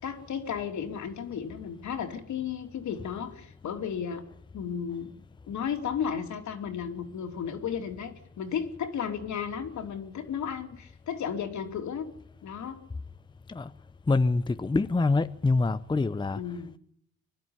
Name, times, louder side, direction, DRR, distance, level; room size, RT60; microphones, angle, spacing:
voice 1, 0.0-4.2 4.5-5.1 5.5-12.1 12.4-12.8 16.3-16.7, left 7 dB, 70° left, 3.3 m, -34 dB
voice 2, 14.1-16.4, left 3 dB, 15° left, 0.7 m, -25 dB
24.0 x 12.0 x 9.8 m
cardioid pair, 90°, 30 cm